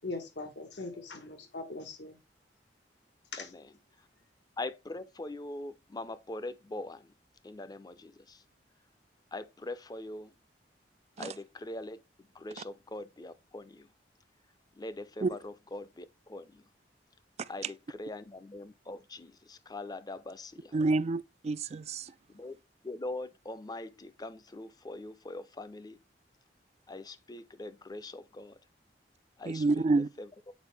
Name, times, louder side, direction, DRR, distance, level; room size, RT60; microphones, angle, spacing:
voice 1, 0.0-2.2 3.3-3.5, left 3 dB, 80° left, 1.4 m, -40 dB
voice 2, 3.4-4.1 4.6-7.1 7.4-8.4 9.3-10.3 11.2-13.9 14.8-16.6 17.5-20.8 22.3-22.6 22.8-26.0 26.9-28.6 29.4-30.5, left 2 dB, 25° left, 0.5 m, -42 dB
voice 3, 20.7-22.1 29.5-30.1, right 3 dB, 40° right, 0.3 m, -28 dB
8.1 x 4.7 x 3.3 m
head